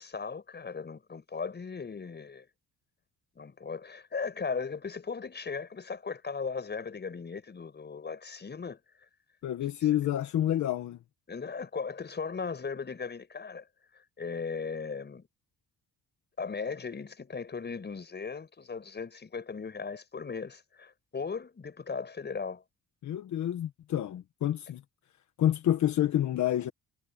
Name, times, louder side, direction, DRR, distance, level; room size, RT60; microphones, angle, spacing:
voice 1, 0.0-2.5 3.4-8.8 11.3-13.7 13.9-15.3 16.4-22.6, left 5 dB, 35° left, 5.9 m, -37 dB
voice 2, 9.4-11.0 23.0-24.8 25.4-26.7, left 12 dB, 70° left, 1.4 m, -28 dB
cardioid pair, 90°, 30 cm